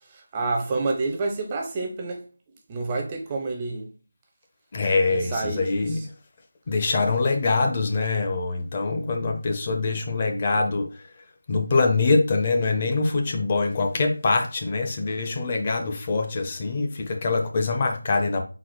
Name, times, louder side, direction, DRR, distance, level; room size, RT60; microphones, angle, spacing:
voice 1, 0.1-2.3 2.7-3.9 5.1-6.1, right 3 dB, 20° right, 0.5 m, -29 dB
voice 2, 4.7-6.0 6.7-10.9 11.5-18.4, left 3 dB, 25° left, 0.6 m, -24 dB
4.1 x 2.2 x 4.4 m
figure-of-eight pair, 170°, 0 cm